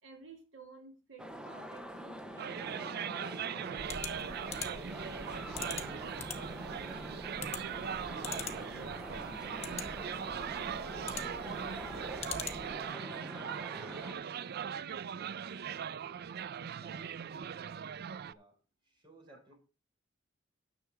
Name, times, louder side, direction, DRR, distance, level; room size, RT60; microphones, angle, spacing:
voice 1, 0.0-6.3 18.3-18.4 19.3-19.4, right 2 dB, 75° right, 4 dB, 2.7 m, -55 dB
sound 1, 1.2-14.1, equal, 5° right, 0.9 m, -45 dB
sound 2, 2.4-18.3, right 8 dB, 55° right, 0.4 m, -40 dB
sound 3, 3.7-12.9, left 6 dB, 35° left, 1.3 m, -45 dB
voice 2, 13.0-16.2 16.8-18.6 18.8-19.6, right 2 dB, 25° right, 2 dB, 4.5 m, -62 dB
10.0 x 7.0 x 4.8 m, 0.33 s
head